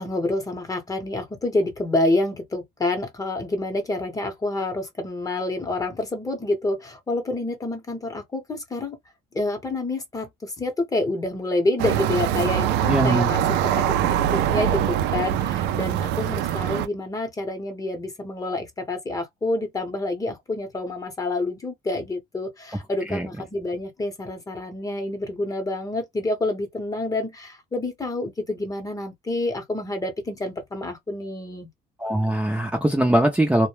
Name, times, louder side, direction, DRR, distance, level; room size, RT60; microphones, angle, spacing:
voice 1, 0.0-9.0 9.3-31.7, left 2 dB, 20° left, 0.9 m, -28 dB
sound 1, 11.8-16.9, right 10 dB, 85° right, 0.4 m, -23 dB
voice 2, 12.9-13.3 23.1-23.3 32.0-33.7, right 1 dB, 5° right, 0.6 m, -21 dB
2.2 x 2.1 x 3.1 m
cardioid pair, 110°, 17 cm